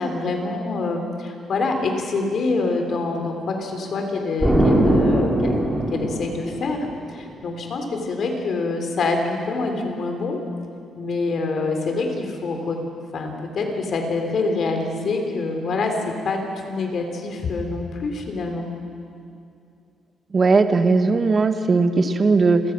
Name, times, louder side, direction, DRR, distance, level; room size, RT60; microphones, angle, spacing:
voice 1, 0.0-5.6 5.9-10.4 10.9-12.8 13.1-15.9 16.2-16.4 16.6-18.7, left 3 dB, 55° left, 4 dB, 3.6 m, -25 dB
Explosion, 4.4-7.1, right 1 dB, 5° right, 3.5 m, -20 dB
voice 2, 20.3-22.6, right 4 dB, 35° right, 9 dB, 1.4 m, -18 dB
29.5 x 15.0 x 6.1 m, 2.5 s
cardioid pair, 90°, 0 cm